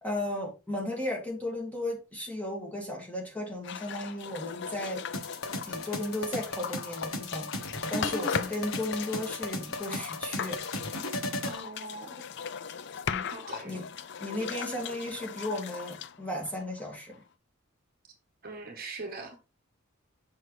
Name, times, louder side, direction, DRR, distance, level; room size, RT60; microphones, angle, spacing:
voice 1, 0.0-5.0 5.7-10.6 13.1-13.3 13.6-13.8 14.2-17.2, left 1 dB, 5° left, 2.1 m, -35 dB
sound 1, 3.6-17.2, left 7 dB, 55° left, 0.4 m, -39 dB
sound 2, 5.1-11.6, left 2 dB, 85° left, 1.2 m, -36 dB
voice 2, 11.5-12.2 13.3-13.8 18.4-19.4, right 3 dB, 45° right, 1.1 m, -42 dB
6.4 x 5.4 x 3.2 m
head